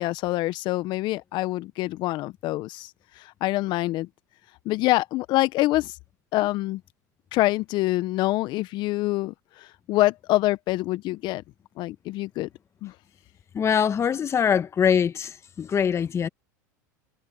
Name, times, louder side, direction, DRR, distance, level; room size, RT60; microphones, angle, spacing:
voice 1, 0.0-4.1 4.6-6.0 6.3-6.8 7.3-11.4 11.8-12.5 12.8-12.9, left 18 dB, 50° left, 1.2 m, -26 dB
voice 2, 13.5-16.3, left 7 dB, 30° left, 1.3 m, -23 dB
hypercardioid pair, 90°, 10 cm